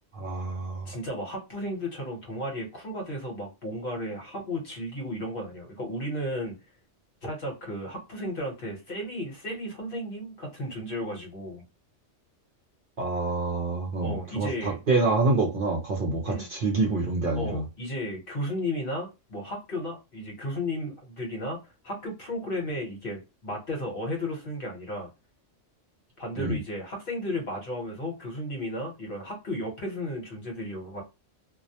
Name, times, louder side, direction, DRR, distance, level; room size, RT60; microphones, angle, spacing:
voice 1, 0.1-0.9 13.0-17.6 26.4-26.6, right 3 dB, 55° right, 0.7 m, -27 dB
voice 2, 0.9-6.6 7.2-11.6 14.0-14.8 16.2-16.5 17.4-25.1 26.2-31.0, left 1 dB, 50° left, 1.1 m, -34 dB
2.3 x 2.0 x 2.7 m
omnidirectional pair, 1.3 m